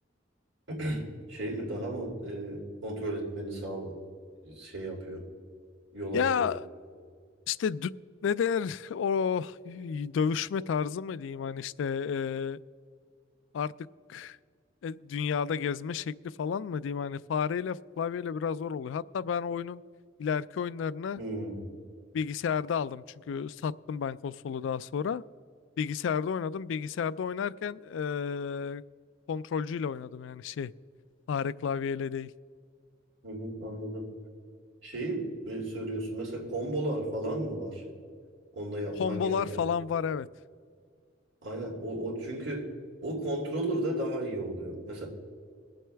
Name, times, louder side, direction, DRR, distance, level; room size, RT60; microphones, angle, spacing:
voice 1, 0.7-3.9 4.4-5.2 5.9-6.5 21.1-21.7 33.2-34.1 34.8-37.8 38.5-39.6 41.4-42.7 43.0-45.1, right 1 dB, 90° right, -2 dB, 3.1 m, -34 dB
voice 2, 6.1-6.7 7.5-7.9 8.2-12.6 13.5-13.7 14.1-14.4 14.8-19.8 20.2-21.2 22.1-25.2 25.8-28.8 29.3-30.7 31.3-32.3 39.0-40.3, left 6 dB, 85° left, 18 dB, 0.3 m, -31 dB
22.0 x 7.7 x 3.4 m, 2.1 s
head